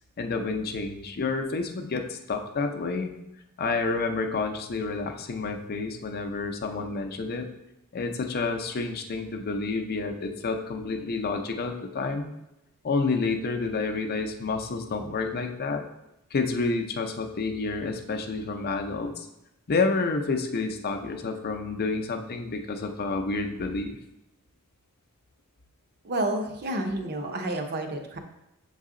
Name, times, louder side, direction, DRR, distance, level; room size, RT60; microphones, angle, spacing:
voice 1, 0.2-3.1 3.6-7.5 7.9-12.3 12.8-15.9 16.3-19.3 19.7-24.0, left 4 dB, 45° left, 5 dB, 0.5 m, -29 dB
voice 2, 26.0-28.2, right 1 dB, 50° right, 4 dB, 0.7 m, -30 dB
6.4 x 4.0 x 3.7 m, 0.88 s
head